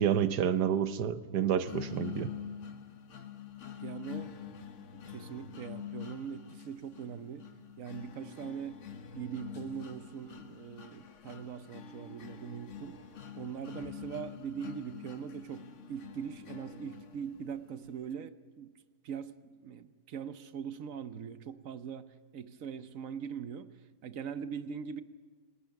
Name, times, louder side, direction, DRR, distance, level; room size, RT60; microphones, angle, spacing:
voice 1, 0.0-2.3, right 9 dB, 85° right, 1.5 m, -29 dB
sound 1, 1.7-17.6, left 9 dB, 55° left, 1.2 m, -46 dB
voice 2, 3.8-4.5 4.9-7.5 7.8-8.9 9.1-13.0 13.3-18.7 19.0-22.1 22.3-23.7 24.0-25.0, right 7 dB, 60° right, 1.2 m, -41 dB
28.0 x 18.5 x 6.0 m
omnidirectional pair, 1.7 m